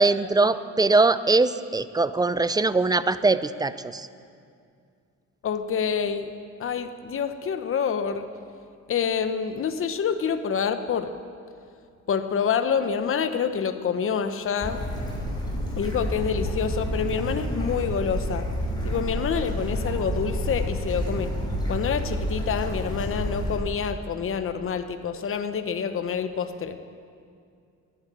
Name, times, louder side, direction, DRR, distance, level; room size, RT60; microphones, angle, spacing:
voice 1, 0.0-4.1, right 3 dB, 15° right, 14 dB, 0.5 m, -22 dB
voice 2, 5.4-6.3 6.6-8.2 8.9-11.1 12.1-14.8 15.1-15.2 15.8-18.5 18.8-21.3 21.7-26.8, left 7 dB, 45° left, 9 dB, 0.9 m, -27 dB
Bird / Stream, 14.6-23.6, equal, 15° left, 5.1 m, -29 dB
12.5 x 11.0 x 8.8 m, 2.3 s
cardioid pair, 90°, 30 cm